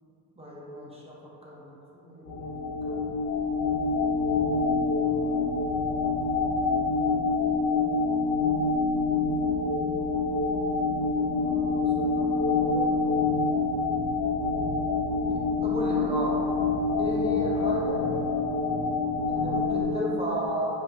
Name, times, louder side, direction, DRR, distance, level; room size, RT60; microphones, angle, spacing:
voice 1, 0.4-1.2 1.4-2.5 2.8-3.0 3.4-3.7 5.1-5.6 6.0-6.6 11.4-13.0 15.3-16.4 17.0-18.0 19.3-20.7, equal, 15° right, -6 dB, 0.5 m, -35 dB
sound 1, 2.3-19.8, left 4 dB, 80° left, 0.8 m, -26 dB
3.3 x 2.6 x 2.5 m, 2.6 s
hypercardioid pair, 55°, 49 cm